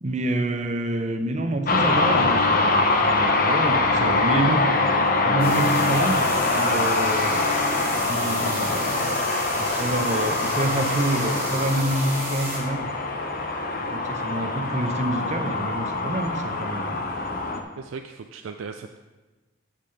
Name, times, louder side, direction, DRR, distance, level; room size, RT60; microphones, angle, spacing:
voice 1, 0.0-4.8 5.2-9.2 9.6-12.9 13.8-17.1, right 1 dB, 35° right, 7 dB, 0.7 m, -28 dB
sound 1, 1.7-17.6, left 3 dB, 45° left, 0.7 m, -23 dB
sound 2, 5.4-12.6, right 2 dB, 15° right, 3.1 m, -34 dB
voice 2, 17.8-19.0, right 5 dB, 75° right, 6 dB, 0.4 m, -37 dB
10.5 x 7.5 x 3.3 m, 1.2 s
head